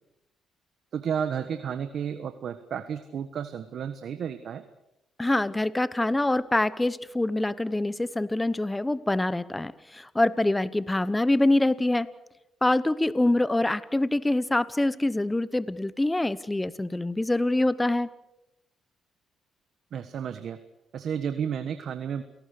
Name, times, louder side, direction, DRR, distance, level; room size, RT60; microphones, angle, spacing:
voice 1, 0.9-4.6 19.9-20.6 20.9-22.2, right 8 dB, 65° right, 10 dB, 1.3 m, -32 dB
voice 2, 5.2-12.1 12.6-18.1, left 2 dB, 15° left, 17 dB, 0.9 m, -25 dB
29.0 x 18.0 x 6.7 m, 0.87 s
cardioid pair, 90°, 0 cm